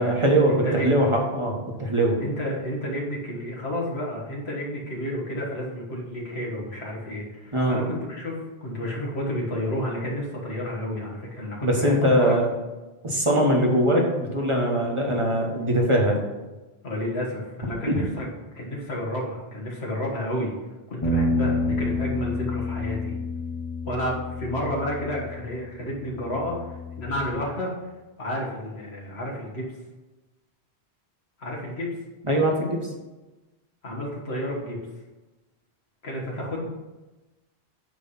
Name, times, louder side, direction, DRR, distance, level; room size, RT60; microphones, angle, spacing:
voice 1, 0.0-2.2 7.5-7.8 11.6-12.5 13.0-16.2 17.9-18.0 32.2-32.8, right 1 dB, 30° right, -1 dB, 1.2 m, -22 dB
voice 2, 0.6-1.0 2.2-12.4 16.8-18.3 18.5-20.6 20.9-23.2 23.9-27.9 28.2-29.7 31.4-31.9 33.8-34.8 36.0-36.7, equal, 75° left, -2 dB, 1.9 m, -31 dB
sound 1, 21.0-27.3, left 2 dB, 25° left, 1.1 m, -29 dB
9.2 x 3.2 x 5.6 m, 1.1 s
omnidirectional pair, 1.1 m